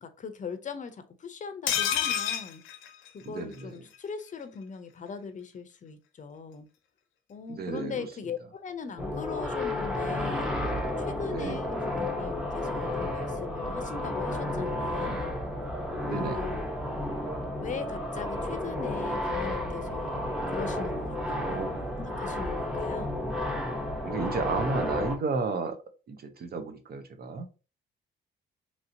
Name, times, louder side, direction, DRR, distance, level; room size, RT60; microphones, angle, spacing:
voice 1, 0.0-2.6 3.1-6.7 7.3-10.5 11.0-15.3 16.0-16.6 17.6-23.1, left 5 dB, 40° left, 0.6 m, -40 dB
sound 1, 1.7-3.6 3.9-4.0 4.3-4.4, left 9 dB, 85° left, 0.6 m, -30 dB
voice 2, 3.2-3.8 7.5-8.1 11.3-11.6 16.0-16.5 21.4-22.0 24.0-25.8 26.1-27.5, right 4 dB, 50° right, 0.7 m, -33 dB
sound 2, 9.0-25.2, left 1 dB, 5° right, 0.8 m, -32 dB
3.1 x 2.8 x 2.6 m
cardioid pair, 90°, 20 cm